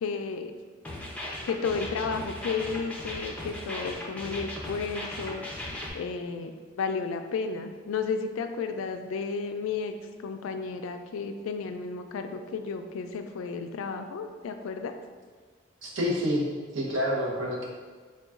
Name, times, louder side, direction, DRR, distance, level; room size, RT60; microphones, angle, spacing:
voice 1, 0.0-0.5 1.4-5.5 5.9-9.9 10.2-14.9, left 5 dB, 85° left, 7 dB, 0.3 m, -33 dB
sound 1, 0.8-5.9, left 1 dB, 5° left, 0.4 m, -37 dB
voice 2, 15.8-16.4 16.7-17.7, equal, 70° right, -3 dB, 0.8 m, -28 dB
3.9 x 2.2 x 3.5 m, 1.5 s
head